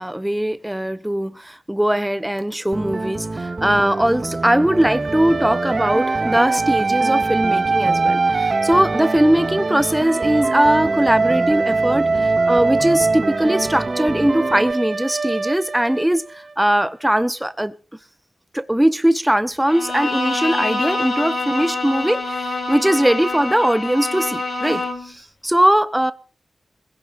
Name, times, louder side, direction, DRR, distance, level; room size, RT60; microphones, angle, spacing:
voice 1, 0.0-17.7 18.5-26.1, right 1 dB, 10° right, 0.9 m, -20 dB
sound 1, 2.7-14.7, right 2 dB, 40° right, 2.1 m, -28 dB
sound 2, 4.7-16.5, right 3 dB, 55° right, 0.9 m, -22 dB
Bowed string instrument, 19.7-25.1, left 2 dB, 65° left, 6.2 m, -26 dB
21.0 x 16.5 x 2.6 m
cardioid pair, 65°, 0 cm